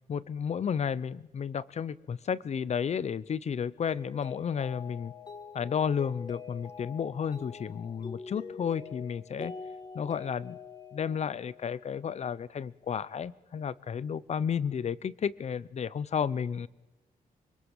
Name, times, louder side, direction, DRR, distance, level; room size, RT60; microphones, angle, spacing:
voice 1, 0.1-5.1 5.5-9.5 9.9-10.6 10.9-16.7, left 7 dB, 50° left, 19 dB, 0.9 m, -32 dB
Mallet percussion, 3.9-12.0, left 5 dB, 30° left, 1.7 m, -45 dB
25.5 x 25.5 x 7.3 m, 0.99 s
wide cardioid pair, 155°, 15 cm